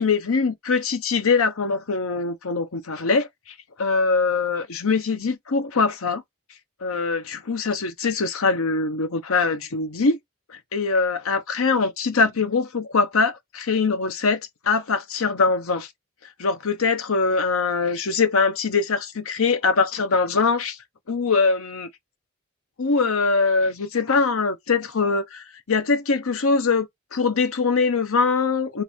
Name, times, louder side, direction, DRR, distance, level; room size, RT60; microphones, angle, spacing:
voice 1, 0.0-6.2 6.8-10.2 10.5-15.9 16.4-20.8 21.1-21.9 22.8-28.8, left 4 dB, 65° left, 0.8 m, -23 dB
4.5 x 2.6 x 3.5 m
head